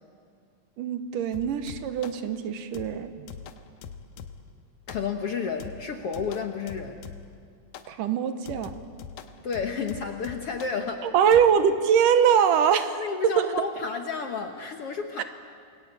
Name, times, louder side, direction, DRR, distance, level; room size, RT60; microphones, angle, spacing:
voice 1, 0.8-3.3 7.9-8.7 11.0-13.5 15.2-15.3, right 8 dB, 70° right, 10 dB, 2.6 m, -23 dB
sound 1, 1.3-2.3 2.7-4.5 4.9-5.3 5.6-7.4 7.7-8.0 8.5-10.8 11.3-11.5, left 7 dB, 75° left, 2.7 m, -43 dB
voice 2, 4.9-7.0 9.4-11.1 12.9-15.2, left 5 dB, 60° left, 5 dB, 1.6 m, -31 dB
28.0 x 22.5 x 8.7 m, 2.3 s
omnidirectional pair, 4.1 m